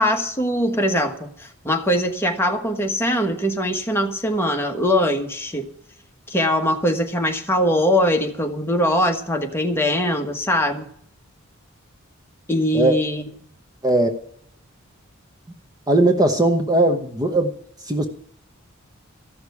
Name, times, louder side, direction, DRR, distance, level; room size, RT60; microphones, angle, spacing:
voice 1, 0.0-5.7 6.3-10.9 12.5-13.2, equal, 10° left, 3 dB, 1.3 m, -21 dB
voice 2, 15.9-17.5 17.8-18.1, right 1 dB, 20° right, 5 dB, 0.9 m, -18 dB
14.5 x 6.5 x 9.5 m, 0.66 s
head